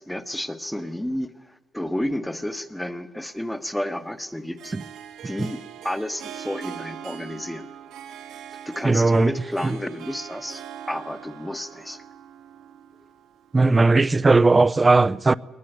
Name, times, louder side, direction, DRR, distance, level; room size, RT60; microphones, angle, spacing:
voice 1, 0.0-4.7 5.2-7.7 8.6-12.0, left 1 dB, 5° left, 1.3 m, -31 dB
Harp, 3.2-13.6, right 9 dB, 85° right, 1.8 m, -42 dB
voice 2, 8.8-9.3 13.5-15.3, right 3 dB, 25° right, 0.6 m, -17 dB
21.0 x 19.5 x 8.1 m
cardioid pair, 90°, 0 cm